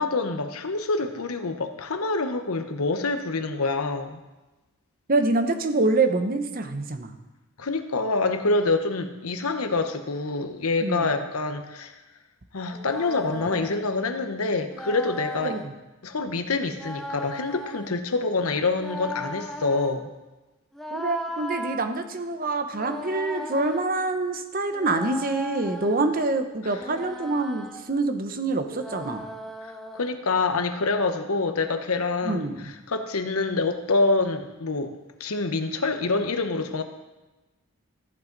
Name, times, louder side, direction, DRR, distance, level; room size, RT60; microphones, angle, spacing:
voice 1, 0.0-4.2 7.6-12.0 12.5-15.6 16.0-20.1 26.6-26.8 29.9-34.9 35.2-36.8, left 3 dB, 85° left, 7 dB, 1.0 m, -26 dB
voice 2, 5.1-7.1 10.8-11.1 15.4-15.7 20.9-29.2 32.2-32.7, right 2 dB, 40° right, 7 dB, 0.8 m, -26 dB
sound 1, 12.7-13.8 14.7-15.7 16.7-17.9 18.7-20.0 20.7-21.8 22.7-23.9 24.7-26.1 26.7-27.8 28.7-30.1, equal, ahead, 0.8 m, -37 dB
14.5 x 8.0 x 4.0 m, 1.1 s
head